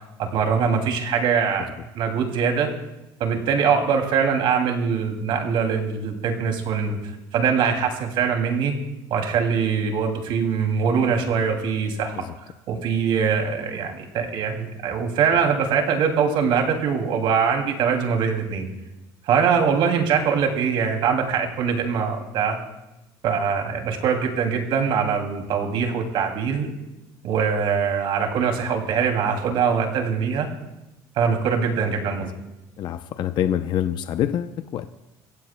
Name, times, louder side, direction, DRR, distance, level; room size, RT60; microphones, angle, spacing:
voice 1, 0.2-1.7 1.9-2.7 3.2-7.0 7.3-8.7 9.1-12.2 12.7-18.7 19.3-22.6 23.2-26.7 27.2-30.5 31.2-32.3, right 6 dB, 60° right, 4 dB, 2.7 m, -22 dB
voice 2, 32.8-34.9, left 10 dB, 55° left, 9 dB, 0.6 m, -26 dB
26.5 x 16.0 x 2.3 m, 0.97 s
cardioid pair, 115°, 10 cm